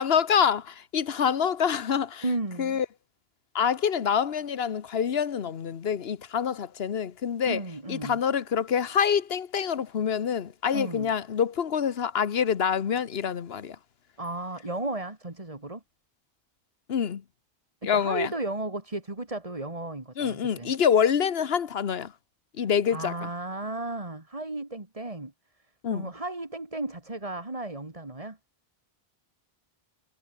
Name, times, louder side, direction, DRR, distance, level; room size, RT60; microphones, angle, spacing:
voice 1, 0.0-2.2 2.6-2.9 3.5-7.6 7.9-13.8 16.9-17.2 17.8-18.3 20.2-22.1 22.6-23.3 25.8-26.1, left 7 dB, 75° left, 1.2 m, -26 dB
voice 2, 2.2-2.8 7.5-8.2 10.7-11.1 14.2-15.8 17.8-20.7 22.6-25.3 25.9-28.4, right 2 dB, 35° right, 2.7 m, -34 dB
omnidirectional pair, 1.0 m